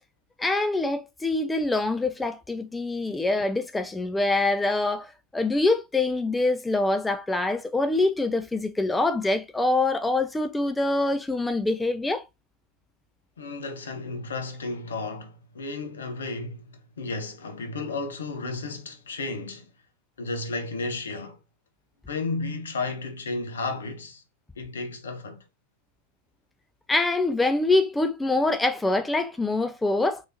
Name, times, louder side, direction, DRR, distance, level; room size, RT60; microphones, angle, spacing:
voice 1, 0.4-12.2 26.9-30.2, left 2 dB, 10° left, 0.3 m, -25 dB
voice 2, 13.4-19.7 20.2-21.4 22.1-24.2 24.6-25.4, left 3 dB, 65° left, 0.8 m, -33 dB
3.3 x 3.1 x 2.6 m
figure-of-eight pair, 90°, 0 cm